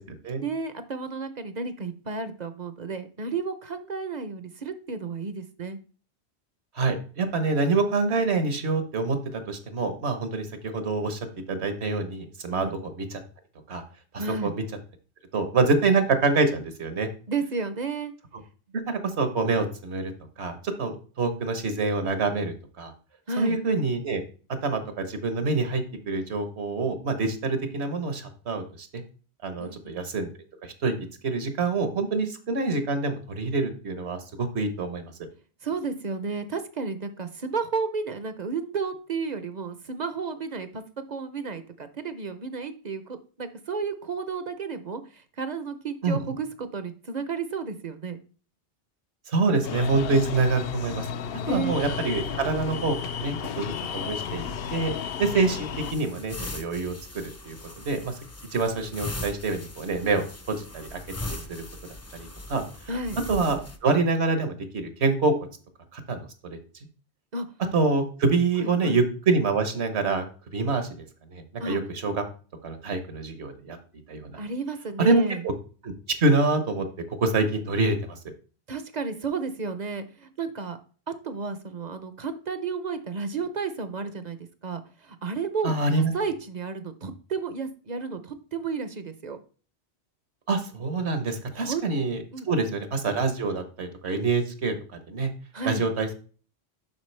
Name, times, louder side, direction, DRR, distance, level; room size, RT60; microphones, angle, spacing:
voice 1, 0.4-5.8 12.5-12.8 14.2-14.5 17.3-18.1 23.3-23.6 29.6-30.0 35.6-40.8 41.1-48.2 51.5-51.8 62.9-63.2 67.3-67.5 68.6-69.0 71.6-71.8 74.4-75.4 78.7-80.8 81.1-84.4 84.6-89.4 91.5-91.8 92.3-92.7 95.5-95.8, right 4 dB, 45° right, 11 dB, 0.7 m, -32 dB
voice 2, 6.7-11.2 11.5-13.2 13.7-13.8 14.4-14.6 15.3-17.1 18.9-20.1 20.4-22.9 23.4-24.2 24.6-29.0 29.4-30.3 30.6-30.9 31.2-35.1 46.0-46.2 49.3-51.1 51.5-54.9 55.2-57.6 57.8-58.1 58.5-61.6 62.1-62.6 63.3-65.3 65.9-66.6 67.7-70.3 70.5-71.0 71.3-72.2 72.6-73.8 74.1-74.4 75.0-75.5 75.8-75.9 76.2-76.9 77.2-78.2 85.6-86.1 90.5-95.3 95.6-96.1, right 3 dB, 70° right, 8 dB, 1.4 m, -26 dB
sound 1, 49.6-55.9, left 6 dB, 65° left, 0.8 m, -33 dB
sound 2, 55.8-63.8, left 1 dB, 20° left, 0.5 m, -39 dB
7.3 x 5.8 x 3.3 m, 0.38 s
omnidirectional pair, 1.1 m